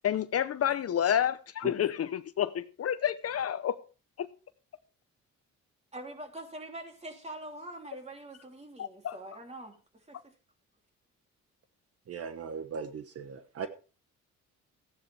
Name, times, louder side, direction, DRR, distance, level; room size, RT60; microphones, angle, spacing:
voice 1, 0.0-3.8 4.2-4.3 8.8-9.2, left 10 dB, 50° left, 0.8 m, -29 dB
voice 2, 5.9-10.3, right 1 dB, 20° right, 3.1 m, -44 dB
voice 3, 12.1-13.7, right 6 dB, 50° right, 1.2 m, -38 dB
14.5 x 9.9 x 3.3 m
cardioid pair, 90°, 30 cm